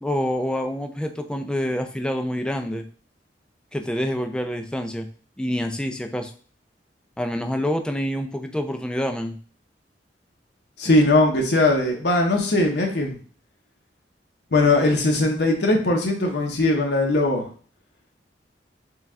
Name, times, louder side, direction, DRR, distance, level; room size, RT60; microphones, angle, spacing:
voice 1, 0.0-2.8 3.7-5.1 5.4-6.3 7.2-9.4, equal, 5° left, 5 dB, 0.3 m, -27 dB
voice 2, 10.8-13.2 14.5-17.4, left 2 dB, 65° left, 1 dB, 0.7 m, -20 dB
4.5 x 2.3 x 3.5 m, 0.43 s
head